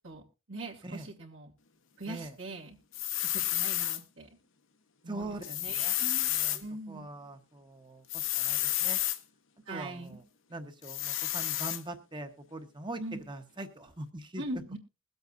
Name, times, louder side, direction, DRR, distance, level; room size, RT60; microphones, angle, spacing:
voice 1, 0.5-1.5 2.0-2.8 3.3-4.3 5.0-7.1 9.7-10.2 13.0-13.2 14.4-14.8, right 2 dB, 70° right, -3 dB, 2.5 m, -41 dB
sound 1, 2.9-4.0 5.4-6.6 8.1-9.2 10.8-11.8, left 13 dB, 65° left, 1.0 m, -30 dB
voice 2, 5.1-5.4 5.7-6.0 6.3-6.6 6.9-9.0 9.7-10.2 10.5-13.0 13.3-14.4, right 2 dB, 20° right, 7 dB, 1.1 m, -42 dB
22.0 x 7.9 x 2.6 m, 0.29 s
head